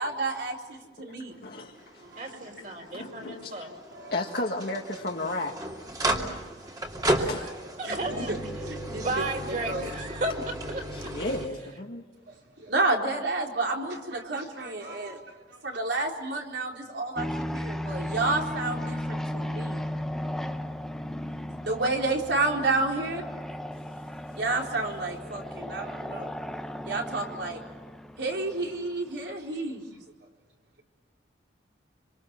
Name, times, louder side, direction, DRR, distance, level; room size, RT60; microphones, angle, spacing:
voice 1, 0.0-1.3 2.0-2.2 3.9-4.2 7.8-9.1 9.5-9.9 12.6-15.2 15.5-19.8 21.6-23.2 24.3-26.3 26.8-27.6 28.2-29.9, right 2 dB, 70° right, 0 dB, 4.1 m, -30 dB
voice 2, 1.0-2.0 2.3-2.7 2.9-3.7 4.1-5.5 7.3-7.5 10.9-12.0, left 2 dB, 55° left, 0 dB, 1.8 m, -34 dB
sound 1, 1.8-11.5, right 1 dB, 20° right, 2.7 m, -34 dB
voice 3, 2.2-3.7 7.2-7.5 7.8-11.3, right 2 dB, 45° right, 2 dB, 4.5 m, -34 dB
sound 2, 17.2-29.2, left 1 dB, ahead, 0.8 m, -35 dB
26.5 x 26.0 x 7.6 m, 1.2 s
head